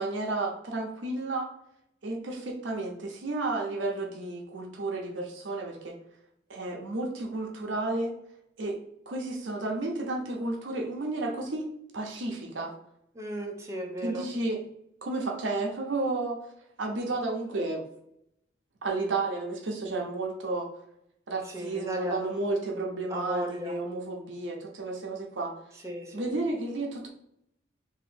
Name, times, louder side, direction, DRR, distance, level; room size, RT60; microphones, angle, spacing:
voice 1, 0.0-1.5 2.0-6.0 6.5-8.1 8.6-8.8 9.1-11.7 11.9-12.7 14.0-14.6 15.0-16.4 16.8-17.8 18.8-20.7 21.3-25.5 26.1-27.1, right 2 dB, 75° right, 0 dB, 0.7 m, -32 dB
voice 2, 13.1-14.3 21.4-22.2 23.1-23.7 25.8-26.3, right 1 dB, 15° right, 0 dB, 0.7 m, -35 dB
2.9 x 2.7 x 4.3 m, 0.75 s
head